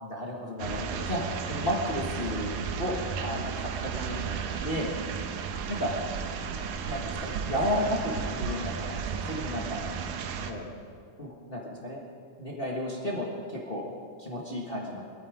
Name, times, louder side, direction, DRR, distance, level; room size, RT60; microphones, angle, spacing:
voice 1, 0.0-1.2 1.5-2.9 3.2-4.4 4.6-4.9 5.7-5.9 6.8-9.8 10.5-10.7 11.2-12.0 12.4-13.8 14.2-15.0, equal, 50° left, -3 dB, 0.6 m, -33 dB
sound 1, 0.6-10.5, right 6 dB, 85° right, 2.5 m, -34 dB
19.0 x 13.0 x 4.9 m, 2.2 s
omnidirectional pair, 3.7 m